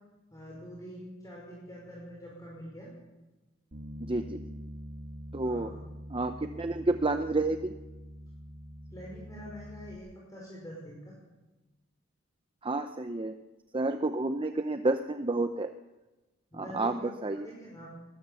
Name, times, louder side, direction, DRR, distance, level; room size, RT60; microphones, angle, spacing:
voice 1, 0.3-2.9 5.4-5.8 8.9-11.2 16.5-17.9, equal, 20° left, -4 dB, 5.5 m, -45 dB
Bass guitar, 3.7-10.0, equal, 55° right, 2.8 m, -44 dB
voice 2, 4.0-4.4 5.3-5.7 6.1-7.7 12.6-13.4 13.7-15.7 16.5-17.5, right 2 dB, 25° right, 8 dB, 0.7 m, -30 dB
21.0 x 20.0 x 7.1 m, 1.1 s
head